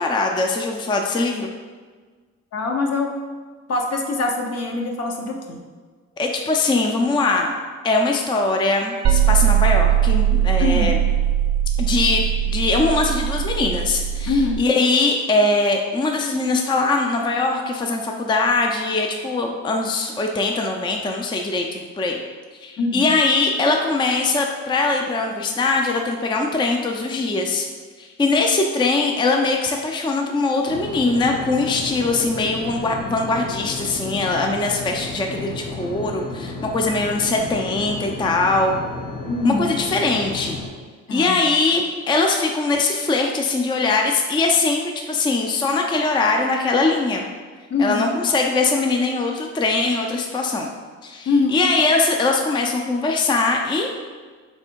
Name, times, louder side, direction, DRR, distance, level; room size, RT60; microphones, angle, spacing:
voice 1, 0.0-1.5 6.2-7.5 7.8-11.0 11.8-22.2 22.6-27.7 28.0-38.8 39.4-40.6 41.1-47.3 47.8-50.7 51.0-53.9, left 3 dB, 15° left, 2 dB, 0.4 m, -21 dB
voice 2, 2.5-3.2 3.7-5.6 10.6-10.9 14.3-14.6 22.8-23.0 39.3-39.8 41.1-41.3 47.7-48.1 51.3-51.6, left 3 dB, 55° left, 2 dB, 0.8 m, -23 dB
sound 1, 9.0-14.6, right 10 dB, 60° right, 0.5 m, -20 dB
sound 2, 30.7-40.7, left 3 dB, 85° left, 1.0 m, -33 dB
3.4 x 3.3 x 4.5 m, 1.5 s
cardioid pair, 90°, 30 cm